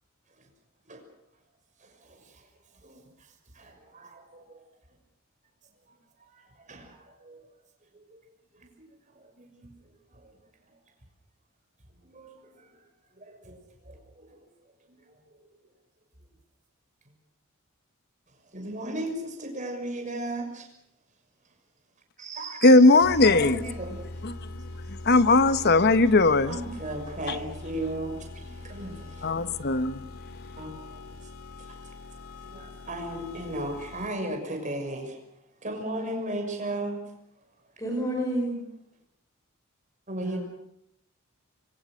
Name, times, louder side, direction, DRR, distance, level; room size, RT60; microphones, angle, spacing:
voice 1, 1.8-2.4 2.8-3.0 3.5-4.6 6.3-7.5 7.9-8.2 9.1-9.7 10.1-10.2 12.0-12.7 13.2-13.6 13.8-14.4 18.5-20.7 22.2-22.8 23.2-24.0 26.5-29.4 30.6-31.3 31.7-31.9 32.5-35.2 35.6-37.0 40.1-40.4, right 1 dB, 35° right, 6.4 m, -36 dB
voice 2, 22.6-23.7 24.2-24.4 24.9-26.6 27.3-27.4 29.2-30.1, left 2 dB, 50° left, 1.1 m, -19 dB
sound 1, 23.0-34.4, left 2 dB, 85° left, 2.8 m, -42 dB
voice 3, 37.8-38.6 40.2-40.4, right 1 dB, 15° left, 5.3 m, -29 dB
26.5 x 24.0 x 6.5 m
head